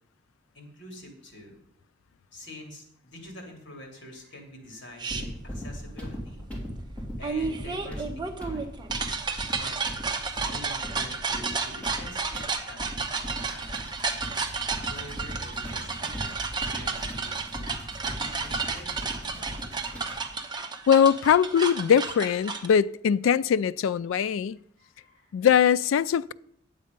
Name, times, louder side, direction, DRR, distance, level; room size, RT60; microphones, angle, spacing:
voice 1, 0.5-1.6 2.3-6.4 7.2-8.8 9.5-9.8 10.4-13.9 14.6-17.3 18.0-19.7 24.8-25.3, left 1 dB, 65° left, 2.8 m, -46 dB
sound 1, 5.0-5.2 7.2-22.7, right 4 dB, 25° right, 0.9 m, -32 dB
sound 2, 5.1-20.3, equal, 5° left, 2.5 m, -39 dB
voice 2, 20.9-24.6 25.3-26.3, left 8 dB, 90° left, 0.3 m, -21 dB
9.4 x 7.5 x 5.2 m
head